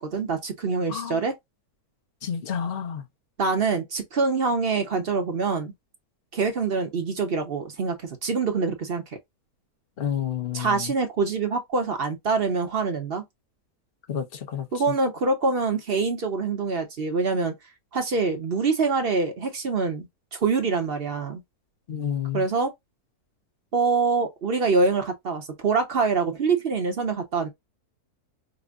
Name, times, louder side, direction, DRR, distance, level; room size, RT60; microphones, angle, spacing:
voice 1, 0.0-1.3 3.4-5.7 6.3-9.0 10.5-13.2 14.7-17.5 17.9-21.4 22.3-22.7 23.7-27.5, right 4 dB, 45° right, 0.9 m, -25 dB
voice 2, 0.9-1.2 2.2-3.0 10.0-10.9 14.1-14.7 21.9-22.4, left 8 dB, 45° left, 0.9 m, -30 dB
5.2 x 2.1 x 2.3 m
omnidirectional pair, 1.7 m